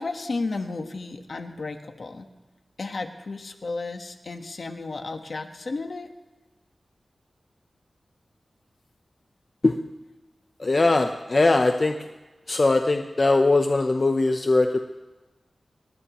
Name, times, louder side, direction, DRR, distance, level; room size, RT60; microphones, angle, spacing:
voice 1, 0.0-2.3 2.8-6.1, left 3 dB, 65° left, 5 dB, 1.4 m, -33 dB
voice 2, 10.6-12.0 12.5-14.8, left 2 dB, 40° left, 5 dB, 0.8 m, -20 dB
22.5 x 19.5 x 3.1 m, 1.2 s
wide cardioid pair, 85°, 0 cm